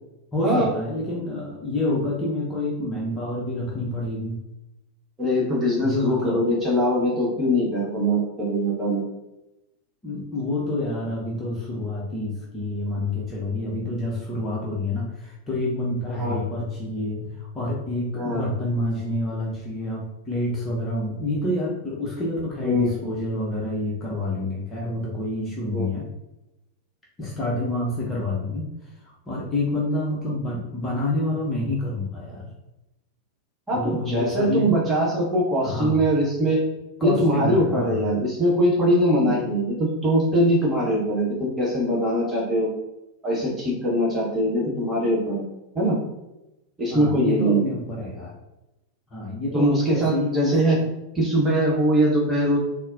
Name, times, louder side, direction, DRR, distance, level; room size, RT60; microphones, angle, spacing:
voice 1, 0.3-4.4 5.8-6.4 10.0-26.1 27.2-28.7 29.3-32.5 33.7-34.7 35.6-36.0 37.0-38.1 46.9-48.3 49.1-50.8, left 1 dB, 15° left, -4 dB, 0.7 m, -28 dB
voice 2, 5.2-9.0 16.2-16.4 18.2-18.4 22.6-22.9 25.7-25.9 33.7-36.6 37.0-39.7 40.0-42.7 43.2-45.4 45.7-46.0 46.8-47.6 49.5-50.8 51.1-52.6, equal, 15° right, -4 dB, 1.2 m, -22 dB
4.0 x 2.1 x 2.6 m, 0.95 s
figure-of-eight pair, 90°, 0 cm